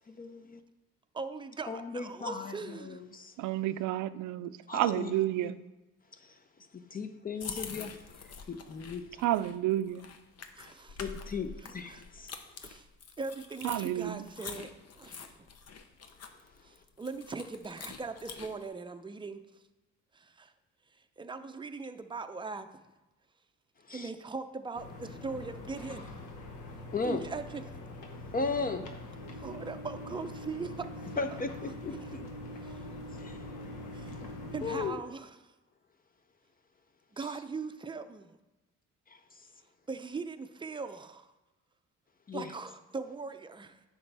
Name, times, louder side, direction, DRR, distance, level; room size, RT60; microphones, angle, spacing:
voice 1, 0.1-0.6 1.7-3.3 4.7-5.2 5.4-5.5 6.2-6.3 6.9-7.9 8.5-9.2 11.0-12.4 23.9-24.1 26.9-27.2 28.3-28.9 31.2-31.9 33.2-33.4 34.6-35.0 39.1-39.2 42.3-42.5, left 4 dB, 30° left, 8 dB, 0.6 m, -36 dB
voice 2, 1.1-3.0 8.5-8.6 10.6-11.0 11.6-12.0 12.6-12.9 13.2-14.7 15.0-15.4 16.6-19.4 20.1-20.5 21.2-22.7 23.9-26.1 27.0-27.6 29.3-30.9 32.6-33.1 33.9-34.2 34.5-35.3 37.1-38.4 39.9-41.3 42.3-43.8, right 4 dB, 15° right, 8 dB, 0.5 m, -40 dB
voice 3, 3.4-5.6 9.2-10.1 13.6-14.2, right 13 dB, 80° right, 14 dB, 0.5 m, -30 dB
sound 1, 7.4-18.7, left 6 dB, 55° left, 0.8 m, -46 dB
sound 2, 24.7-34.9, left 1 dB, 85° left, 1.1 m, -43 dB
9.7 x 5.9 x 3.4 m, 1.0 s
cardioid pair, 90°, 30 cm